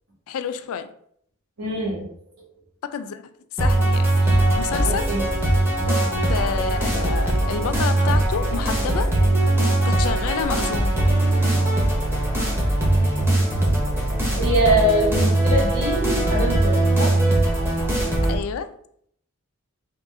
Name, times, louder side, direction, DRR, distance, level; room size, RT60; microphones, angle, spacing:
voice 1, 0.3-0.9 2.9-5.1 5.9-6.0 6.3-9.1 9.8-11.0 18.3-18.8, left 7 dB, 80° left, 0.4 m, -29 dB
voice 2, 1.6-2.1 2.4-2.5 4.8-5.2 5.9-6.1 14.4-17.2, right 1 dB, 85° right, 1.5 m, -23 dB
sound 1, 3.6-18.4, right 1 dB, 10° right, 0.8 m, -20 dB
3.7 x 2.4 x 3.5 m
head